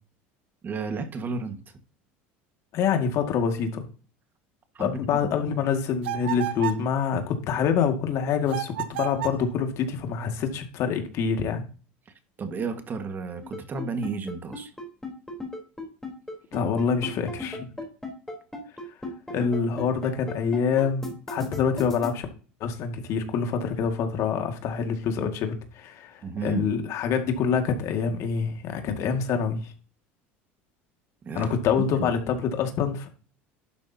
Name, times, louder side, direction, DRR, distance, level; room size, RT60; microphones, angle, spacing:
voice 1, 0.6-1.6 4.7-5.2 12.4-14.7 26.2-26.7 31.2-31.5 31.9-32.1, right 4 dB, 30° right, 1.6 m, -32 dB
voice 2, 2.7-3.8 4.8-11.6 16.5-17.7 19.3-22.3 22.6-29.7 31.3-33.1, left 6 dB, 55° left, 2.0 m, -26 dB
sound 1, 6.0-6.9 8.5-9.5, right 12 dB, 85° right, 0.9 m, -32 dB
sound 2, 13.4-22.1, left 2 dB, 5° left, 3.8 m, -35 dB
11.5 x 8.4 x 2.8 m
supercardioid pair, 105°, 6 cm